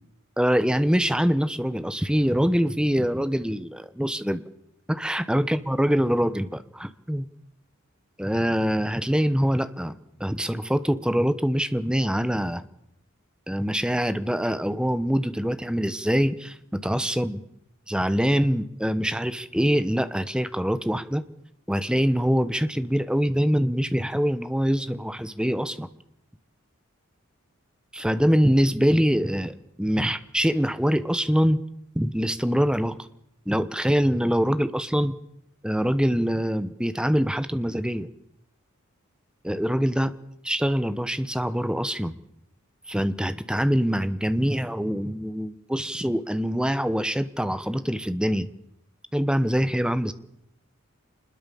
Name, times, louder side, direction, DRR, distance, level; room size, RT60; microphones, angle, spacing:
voice 1, 0.4-4.4 4.9-7.3 8.2-9.9 10.2-12.6 13.5-17.4 17.9-21.2 21.7-25.9 27.9-31.6 31.9-33.0 33.5-35.2 35.6-38.1 39.4-40.1 40.5-42.2 42.9-48.5 49.1-50.1, equal, 5° right, 13 dB, 1.1 m, -24 dB
26.0 x 21.0 x 7.1 m, 0.77 s
head